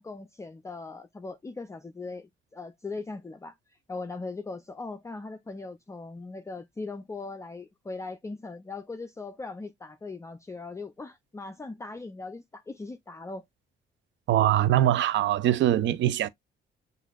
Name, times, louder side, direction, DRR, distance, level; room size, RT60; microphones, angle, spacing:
voice 1, 0.0-13.4, left 3 dB, 15° left, 0.4 m, -39 dB
voice 2, 14.3-16.3, right 12 dB, 65° right, 0.5 m, -22 dB
6.4 x 2.6 x 2.3 m
cardioid pair, 90°, 20 cm